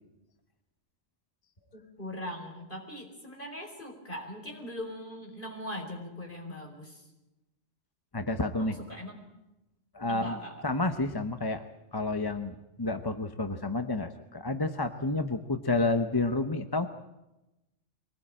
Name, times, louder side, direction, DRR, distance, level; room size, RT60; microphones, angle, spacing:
voice 1, 1.7-7.0 8.6-9.2 10.1-10.7, equal, 45° left, 2 dB, 5.1 m, -41 dB
voice 2, 8.1-8.8 9.9-11.6 11.9-16.9, left 2 dB, 20° left, 8 dB, 0.9 m, -30 dB
24.0 x 19.5 x 8.8 m, 0.98 s
omnidirectional pair, 1.2 m